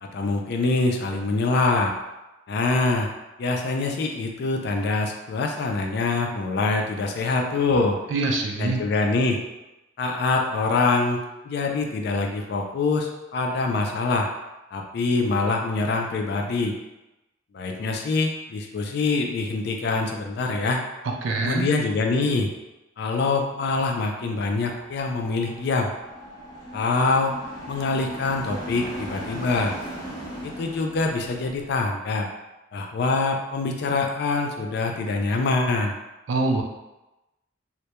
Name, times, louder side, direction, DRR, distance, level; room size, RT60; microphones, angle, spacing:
voice 1, 0.0-1.9 2.5-3.1 3.4-8.0 8.6-9.4 10.0-11.2 11.4-14.3 14.7-16.7 17.5-20.8 21.4-22.5 23.0-25.9 26.7-27.3 27.7-29.8 30.4-32.3 32.7-36.0, left 3 dB, 55° left, 3 dB, 0.3 m, -24 dB
voice 2, 8.1-8.8 21.0-21.7 36.3-36.6, right 3 dB, 70° right, 1 dB, 0.4 m, -24 dB
sound 1, 24.3-31.7, equal, 20° left, 0.6 m, -38 dB
2.2 x 2.1 x 2.8 m, 1.0 s
head